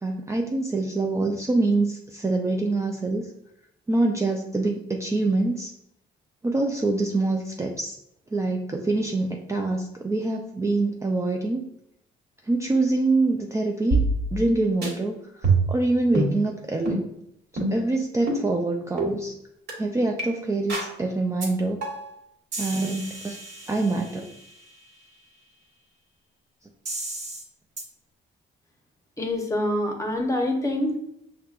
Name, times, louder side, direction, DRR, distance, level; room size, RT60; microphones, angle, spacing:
voice 1, 0.0-3.3 3.9-5.7 6.4-8.0 8.3-11.6 12.4-14.0 14.3-17.1 17.6-19.3 19.8-21.8 22.6-23.4 23.7-24.3, right 2 dB, 15° right, 1 dB, 0.4 m, -25 dB
sound 1, 13.9-14.5 14.8-14.9 15.4-15.8 16.1-16.3 16.9-17.0 17.6-17.9 18.3-18.4 19.0-19.1 19.7-19.8 20.2-20.3 20.7-20.9 21.4-21.5 21.8-22.1 22.5-24.4 26.9-27.4 27.8-27.9, right 2 dB, 60° right, 1.5 m, -27 dB
voice 2, 29.2-31.0, left 1 dB, 15° left, 2 dB, 0.8 m, -25 dB
5.7 x 2.2 x 2.4 m, 0.78 s
cardioid pair, 90°, 20 cm